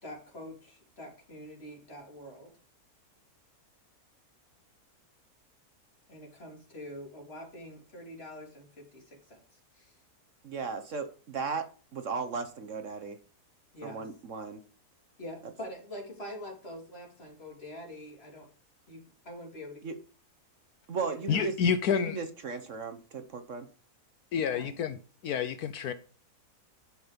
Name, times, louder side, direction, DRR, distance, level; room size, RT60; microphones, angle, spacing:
voice 1, 0.0-2.5 6.1-9.4 9.7-10.0 13.7-14.0 15.2-18.5 18.9-19.9 21.1-21.5 24.3-24.7, equal, 40° left, 3.5 m, -45 dB
voice 2, 10.4-11.7 11.9-13.2 13.8-14.6 19.8-19.9 20.9-21.5 21.9-23.7, right 4 dB, 55° right, 1.2 m, -36 dB
voice 3, 21.3-22.2 24.3-25.0 25.2-25.9, left 7 dB, 70° left, 1.2 m, -28 dB
11.5 x 6.2 x 5.2 m
omnidirectional pair, 1.7 m